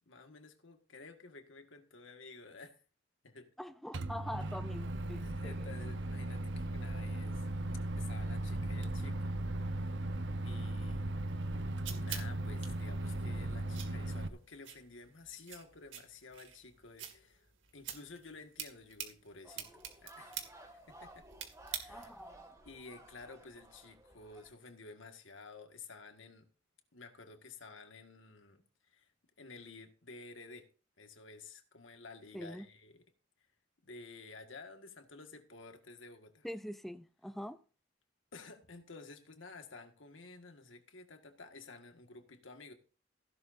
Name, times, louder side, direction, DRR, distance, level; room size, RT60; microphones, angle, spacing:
voice 1, 0.0-2.8 3.2-3.5 5.2-7.5 8.0-9.4 9.7-10.0 10.4-11.1 11.9-21.3 21.7-22.1 22.6-26.5 26.9-29.1 29.4-30.7 31.0-33.0 33.8-36.5 38.3-42.7, left 3 dB, 85° left, 1.8 m, -52 dB
voice 2, 3.6-5.6 21.9-22.4 32.3-32.6 36.4-37.6, equal, ahead, 0.4 m, -44 dB
Microwave oven, 3.9-14.3, right 1 dB, 65° right, 0.9 m, -37 dB
sound 1, 11.3-22.3, right 9 dB, 80° right, 2.2 m, -48 dB
sound 2, 19.4-24.5, right 1 dB, 15° right, 2.0 m, -56 dB
16.0 x 11.5 x 2.7 m
head